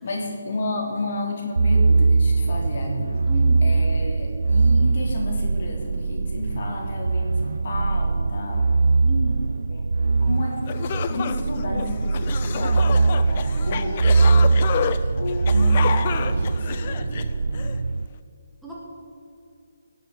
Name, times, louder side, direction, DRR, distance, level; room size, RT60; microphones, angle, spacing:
voice 1, 0.0-3.1 3.6-8.7 9.7-10.6 11.1-14.5 15.2-17.7, left 2 dB, 50° left, 0 dB, 3.4 m, -32 dB
sound 1, 1.6-18.1, right 3 dB, 80° right, 0.3 m, -21 dB
voice 2, 3.3-3.6 9.0-9.4 18.6-18.7, right 1 dB, ahead, -7 dB, 1.9 m, -33 dB
sound 2, 10.3-10.4 10.7-17.8, left 8 dB, 35° left, 0.6 m, -30 dB
17.5 x 7.1 x 7.3 m, 2.5 s
hypercardioid pair, 160°, 0 cm